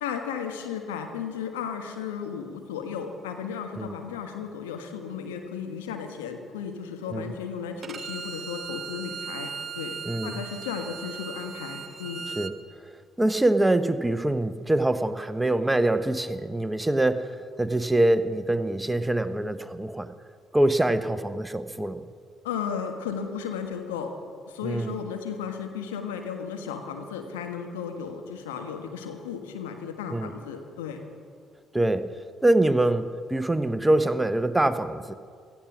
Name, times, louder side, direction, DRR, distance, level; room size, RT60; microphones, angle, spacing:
voice 1, 0.0-10.0 10.2-12.3 22.4-24.1 24.5-31.0, left 7 dB, 80° left, 5 dB, 1.4 m, -34 dB
Bowed string instrument, 7.8-12.5, right 6 dB, 45° right, 1.1 m, -38 dB
voice 2, 10.0-10.4 12.4-12.5 13.2-20.1 20.5-22.0 24.6-25.0 30.1-30.3 31.7-35.1, right 1 dB, 10° right, 12 dB, 0.8 m, -24 dB
17.0 x 13.5 x 6.2 m, 2.1 s
hypercardioid pair, 45°, 0 cm